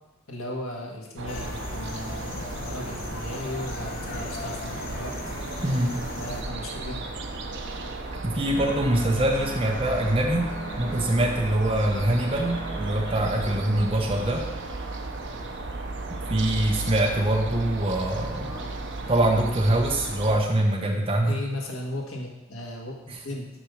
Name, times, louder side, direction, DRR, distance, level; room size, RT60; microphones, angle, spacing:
voice 1, 0.3-5.1 6.1-7.1 18.4-18.8 21.3-23.5, left 1 dB, 75° left, -1 dB, 1.6 m, -36 dB
sound 1, 1.2-20.4, right 2 dB, 60° right, 0.8 m, -35 dB
sound 2, 1.3-6.4, left 2 dB, 45° left, 0.8 m, -38 dB
voice 2, 5.6-6.0 8.2-14.5 16.3-18.6 19.1-21.4 23.1-23.2, right 1 dB, 30° right, 0 dB, 0.9 m, -24 dB
sound 3, 8.5-15.0, right 1 dB, 20° left, 1.7 m, -40 dB
6.1 x 5.1 x 6.5 m, 1.0 s
head